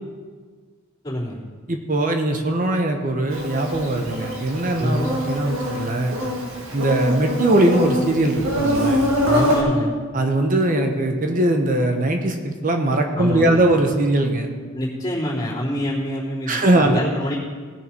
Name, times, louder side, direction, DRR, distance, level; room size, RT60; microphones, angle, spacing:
voice 1, 1.0-1.4 4.8-5.1 9.2-9.9 13.1-13.6 14.7-17.4, equal, 20° left, -8 dB, 3.3 m, -26 dB
voice 2, 1.7-6.2 6.7-9.1 10.1-14.5 16.5-17.0, right 1 dB, 40° right, 4 dB, 1.1 m, -20 dB
Insect, 3.3-9.6, equal, 80° right, 2.3 m, -24 dB
18.0 x 6.7 x 4.5 m, 1.5 s
head